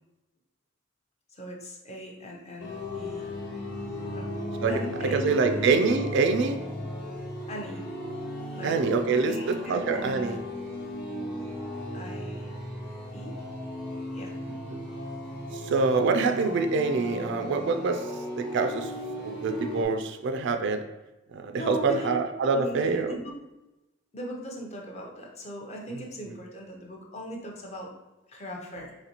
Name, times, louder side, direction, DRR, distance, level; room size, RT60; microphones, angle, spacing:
voice 1, 1.3-3.3 4.1-5.7 7.5-7.8 8.6-9.0 9.2-10.4 11.9-12.5 13.1-13.4 14.1-14.4 21.6-22.2 22.5-23.4 24.1-27.9 28.3-28.9, equal, 30° left, 0 dB, 0.6 m, -39 dB
sound 1, 2.6-19.8, left 1 dB, 55° left, 1.1 m, -36 dB
voice 2, 5.1-6.6 8.6-10.4 14.7-14.8 15.6-18.0 18.4-18.9 19.2-20.8 21.3-23.2 25.9-26.0, right 4 dB, 60° right, 6 dB, 0.3 m, -25 dB
4.1 x 3.0 x 2.9 m, 1.0 s
head